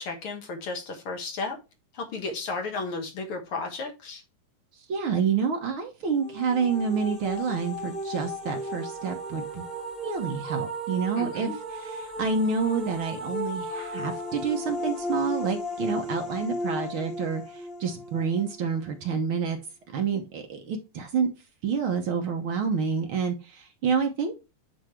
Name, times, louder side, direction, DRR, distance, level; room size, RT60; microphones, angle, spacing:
voice 1, 0.0-1.6 1.9-4.2 11.2-11.6, left 3 dB, 55° left, 1.9 m, -33 dB
voice 2, 4.9-9.7 10.0-11.5 11.8-19.6 19.9-21.3 21.6-24.4, right 5 dB, 65° right, 1.4 m, -28 dB
sound 1, 6.1-18.9, equal, ahead, 2.0 m, -35 dB
9.9 x 3.3 x 3.1 m
omnidirectional pair, 3.5 m